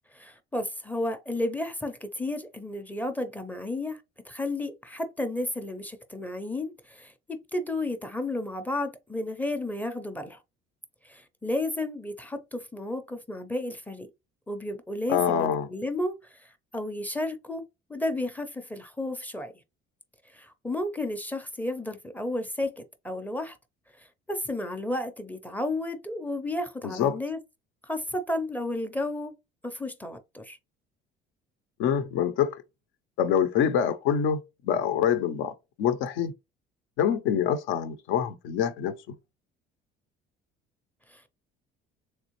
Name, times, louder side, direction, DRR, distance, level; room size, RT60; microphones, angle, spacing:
voice 1, 0.1-10.4 11.0-14.1 14.5-17.6 17.9-19.5 20.3-23.6 24.0-27.4 27.8-29.3 29.6-30.6 41.1-41.2, left 1 dB, 10° left, 0.5 m, -32 dB
voice 2, 15.1-15.7 27.0-27.2 31.8-32.6 33.2-36.3 37.0-39.1, left 8 dB, 80° left, 0.7 m, -26 dB
3.5 x 3.1 x 3.0 m
cardioid pair, 125°, 20 cm